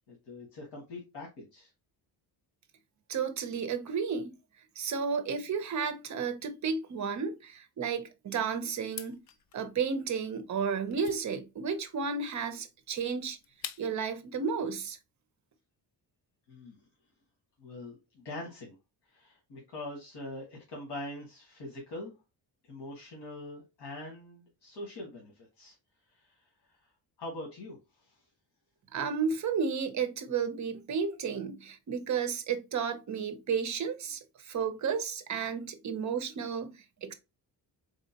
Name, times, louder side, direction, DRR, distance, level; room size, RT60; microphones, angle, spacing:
voice 1, 0.1-1.7 16.5-16.8 17.6-18.7 19.1-22.1 22.7-25.7 26.1-26.4 27.2-28.2, left 1 dB, 80° left, 1.5 m, -43 dB
voice 2, 3.1-4.3 4.8-9.2 9.5-13.4 13.8-15.0 28.9-37.1, right 6 dB, 45° right, 0.7 m, -32 dB
sound 1, 8.8-14.1, left 9 dB, 55° left, 0.5 m, -47 dB
4.1 x 3.6 x 2.8 m
wide cardioid pair, 175°, 41 cm